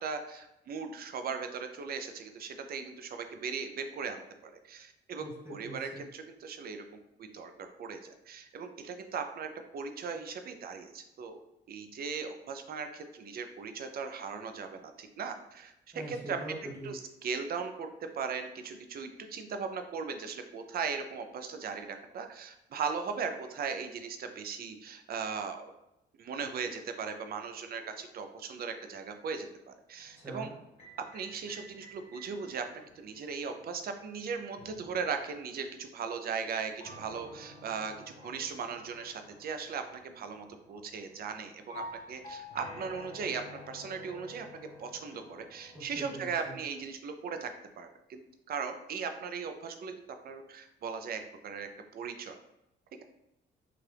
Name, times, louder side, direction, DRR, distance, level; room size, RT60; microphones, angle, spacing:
voice 1, 0.0-6.8 7.2-7.5 7.8-11.4 11.7-16.4 16.8-17.9 18.1-25.7 26.2-30.5 31.1-32.7 33.0-37.9 38.2-44.4 44.8-47.5 47.8-48.2 48.5-49.9 50.2-52.4, right 5 dB, 50° right, 7 dB, 0.4 m, -38 dB
voice 2, 5.2-6.0 15.9-16.9 30.1-30.5 45.7-46.5, right 1 dB, 10° right, -4 dB, 0.9 m, -43 dB
sound 1, 30.0-35.9 36.8-46.8, left 1 dB, 35° left, 1.5 m, -51 dB
2.7 x 2.4 x 3.3 m, 0.88 s
cardioid pair, 90°, 20 cm